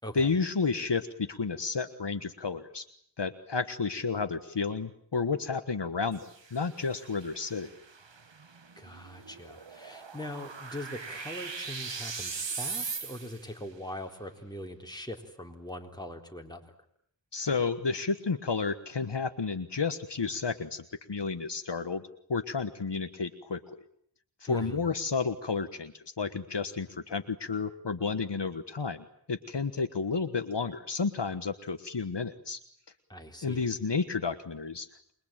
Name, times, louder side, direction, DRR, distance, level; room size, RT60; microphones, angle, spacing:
voice 1, 0.1-2.9 3.2-7.7 17.3-22.0 22.3-23.8 24.4-32.6 33.4-35.1, left 4 dB, 65° left, 9 dB, 1.4 m, -31 dB
sound 1, 6.1-13.5, right 5 dB, 70° right, 1.6 m, -40 dB
voice 2, 8.8-16.6 24.5-24.9 33.1-33.7, left 1 dB, 10° left, 2 dB, 4.0 m, -41 dB
28.0 x 22.0 x 8.9 m, 0.66 s
wide cardioid pair, 50°, 45 cm